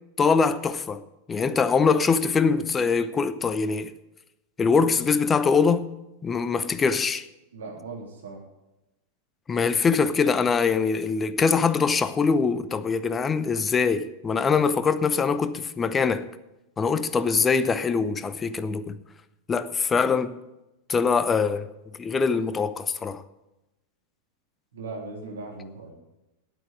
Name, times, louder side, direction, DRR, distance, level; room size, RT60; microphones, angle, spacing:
voice 1, 0.2-3.9 4.6-5.9 6.2-7.2 9.5-16.3 16.8-19.0 19.5-20.4 20.9-21.7 22.0-23.2, left 5 dB, 20° left, 0.7 m, -23 dB
voice 2, 7.5-8.4 24.7-25.9, right 3 dB, 65° right, 3.4 m, -38 dB
9.0 x 8.9 x 9.2 m
figure-of-eight pair, 90°, 0 cm